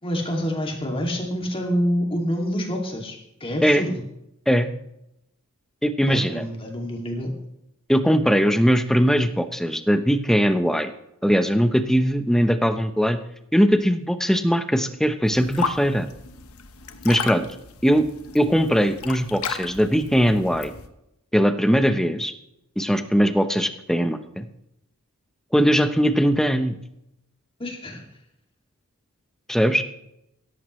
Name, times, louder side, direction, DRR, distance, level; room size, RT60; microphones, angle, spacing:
voice 1, 0.0-4.0 6.1-7.3 27.6-28.0, equal, 25° left, 1 dB, 2.5 m, -27 dB
voice 2, 5.8-6.4 7.9-10.9 11.2-13.2 13.5-16.1 17.0-17.5 17.8-18.1 18.3-20.7 21.3-22.3 22.8-24.5 25.5-26.7 29.5-29.8, equal, ahead, 8 dB, 0.9 m, -20 dB
sound 1, 15.2-20.9, left 5 dB, 90° left, 1.1 m, -34 dB
17.0 x 14.0 x 3.2 m, 0.81 s
head